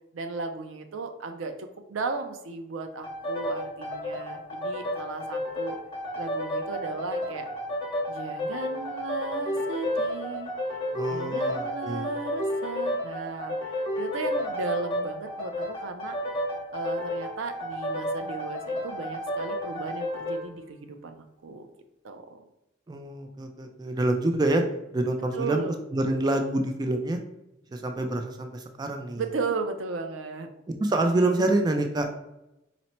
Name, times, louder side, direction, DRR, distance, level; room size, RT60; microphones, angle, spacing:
voice 1, 0.1-5.8 6.2-7.5 8.1-10.5 11.1-16.1 16.7-21.7 22.0-22.4 25.3-25.8 29.2-30.5, right 4 dB, 85° right, 6 dB, 0.5 m, -35 dB
sound 1, 3.0-20.5, left 1 dB, 25° left, 1.0 m, -31 dB
voice 2, 10.9-12.1 22.9-24.6 24.9-25.6 25.9-27.2 27.7-29.2 30.8-32.1, right 2 dB, 20° right, 5 dB, 0.3 m, -26 dB
4.1 x 2.0 x 4.3 m, 0.90 s
head